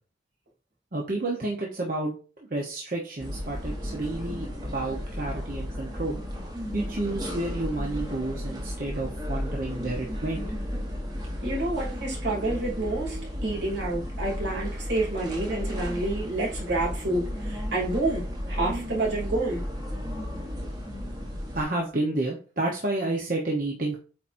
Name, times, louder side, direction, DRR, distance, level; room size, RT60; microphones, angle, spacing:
voice 1, 0.9-6.2 6.7-10.4 21.5-24.0, right 2 dB, 50° right, -1 dB, 1.0 m, -30 dB
sound 1, 3.2-21.6, equal, 20° right, 1.2 m, -34 dB
voice 2, 11.4-19.6, right 2 dB, 75° right, -4 dB, 2.9 m, -29 dB
7.9 x 4.4 x 2.7 m, 0.36 s
head